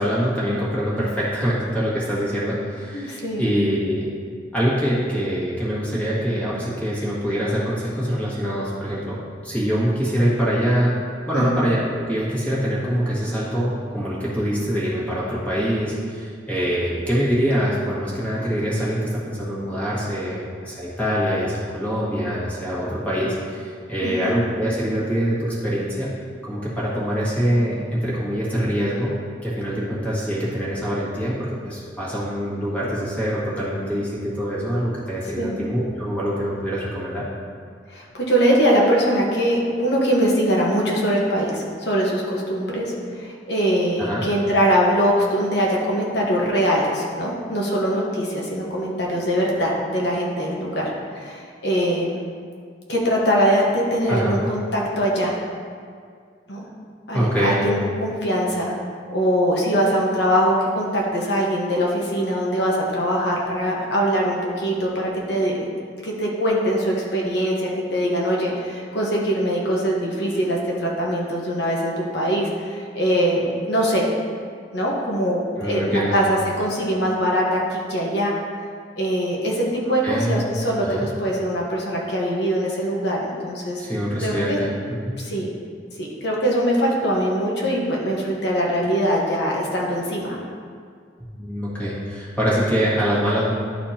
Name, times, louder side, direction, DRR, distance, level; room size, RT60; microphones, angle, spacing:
voice 1, 0.0-4.1 4.5-9.2 9.4-10.9 11.3-26.1 26.4-29.1 29.4-37.2 44.0-44.2 54.1-54.4 57.1-57.6 75.6-76.2 80.0-80.4 80.8-81.0 83.8-85.2 91.2-93.5, equal, 10° left, -8 dB, 1.8 m, -24 dB
voice 2, 2.9-3.4 11.3-11.5 24.0-24.3 35.4-35.6 37.9-52.2 52.9-55.4 56.5-56.7 57.1-58.7 59.1-65.7 66.0-74.0 74.7-78.3 79.0-83.8 84.2-84.6 85.2-85.5 86.0-90.4, equal, 60° left, -3 dB, 1.3 m, -22 dB
11.5 x 4.3 x 2.9 m, 2.1 s
head